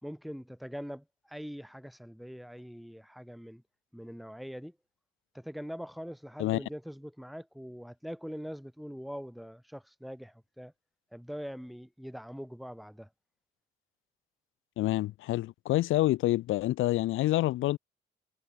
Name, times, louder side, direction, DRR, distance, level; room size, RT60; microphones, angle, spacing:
voice 1, 0.0-3.6 3.9-4.8 5.3-10.7 11.1-13.1, equal, ahead, 4.3 m, -43 dB
voice 2, 14.8-17.8, left 16 dB, 85° left, 1.3 m, -27 dB
cardioid pair, 90°, 20 cm